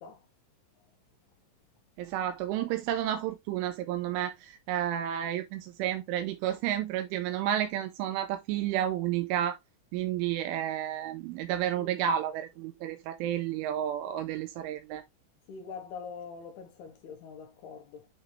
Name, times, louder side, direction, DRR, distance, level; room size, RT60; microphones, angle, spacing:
voice 1, 2.0-9.6 9.9-15.0, right 11 dB, 85° right, 3.2 m, -31 dB
voice 2, 15.5-18.1, left 6 dB, 70° left, 2.6 m, -44 dB
8.9 x 3.4 x 3.2 m
omnidirectional pair, 5.6 m